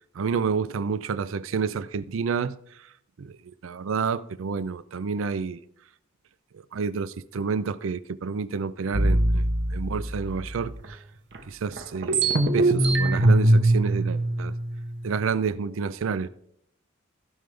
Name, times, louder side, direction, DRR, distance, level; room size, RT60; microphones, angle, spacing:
voice 1, 0.2-2.6 3.2-3.3 3.6-5.6 6.7-9.4 9.7-10.7 11.5-14.5 15.0-16.3, right 5 dB, 75° right, 0.4 m, -29 dB
sound 1, 8.9-10.9 11.4-11.5 11.7-15.3, right 1 dB, 60° right, 1.0 m, -22 dB
15.5 x 5.3 x 3.3 m
head